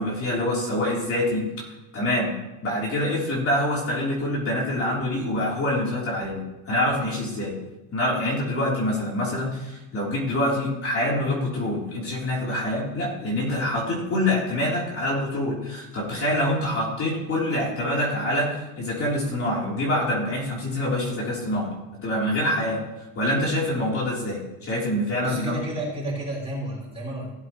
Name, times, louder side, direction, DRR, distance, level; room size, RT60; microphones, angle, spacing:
voice 1, 0.0-1.6 1.9-2.3 2.6-7.6 7.9-21.7 22.0-22.8 23.2-25.6, left 1 dB, 35° left, -4 dB, 3.7 m, -25 dB
voice 2, 25.2-27.3, right 1 dB, 15° right, -4 dB, 4.4 m, -31 dB
16.5 x 7.7 x 3.1 m, 1.0 s
supercardioid pair, 115°, 40 cm